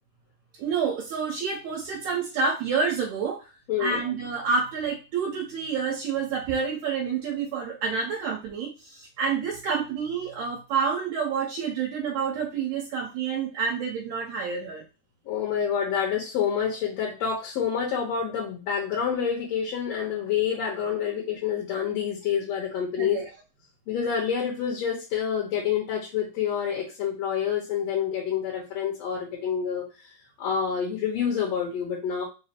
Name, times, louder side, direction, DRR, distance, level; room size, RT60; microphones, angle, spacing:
voice 1, 0.6-3.5 3.8-14.8 23.0-23.2, right 5 dB, 75° right, -1 dB, 1.9 m, -28 dB
voice 2, 3.7-4.0 15.3-23.2 23.9-29.9 30.4-32.2, left 7 dB, 65° left, -2 dB, 1.9 m, -27 dB
5.1 x 2.0 x 4.1 m, 0.31 s
omnidirectional pair, 3.6 m